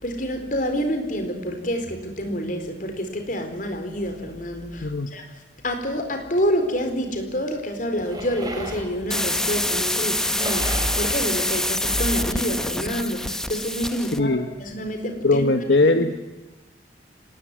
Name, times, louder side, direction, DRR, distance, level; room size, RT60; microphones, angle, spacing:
voice 1, 0.0-5.2 5.6-14.3 14.6-15.4, equal, 50° left, 6 dB, 4.4 m, -27 dB
sound 1, 8.0-12.8, right 1 dB, 20° right, 4.2 m, -38 dB
sound 2, 9.1-14.2, left 1 dB, 5° left, 1.0 m, -26 dB
voice 2, 14.0-14.5 15.2-16.1, left 2 dB, 75° left, 7 dB, 1.3 m, -20 dB
26.0 x 19.5 x 9.8 m, 1.1 s
head